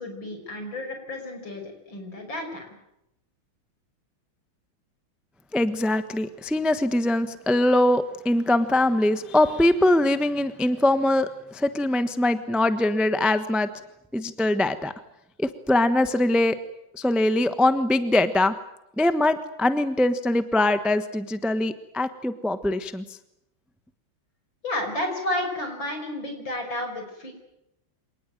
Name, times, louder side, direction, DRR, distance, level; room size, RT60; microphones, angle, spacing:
voice 1, 0.0-2.8 24.6-27.3, left 1 dB, 65° left, 5 dB, 6.5 m, -31 dB
voice 2, 5.5-13.7 14.1-14.9 15.4-16.6 16.9-18.5 19.0-23.0, left 1 dB, ahead, 10 dB, 0.7 m, -22 dB
26.0 x 19.5 x 9.2 m, 0.85 s
omnidirectional pair, 2.3 m